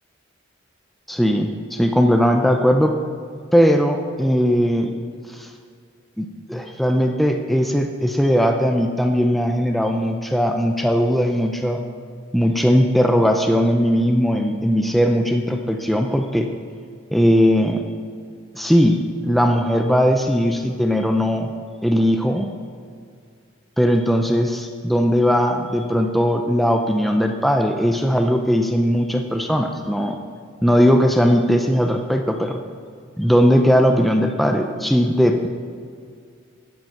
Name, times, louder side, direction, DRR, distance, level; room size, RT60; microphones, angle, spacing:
voice 1, 1.1-2.9 3.5-4.9 5.4-5.5 6.2-11.8 12.3-16.5 17.1-17.8 18.5-21.5 21.8-22.5 23.8-30.2 30.6-32.6 33.2-35.5, equal, ahead, 3 dB, 0.5 m, -18 dB
10.5 x 7.9 x 5.7 m, 2.2 s
head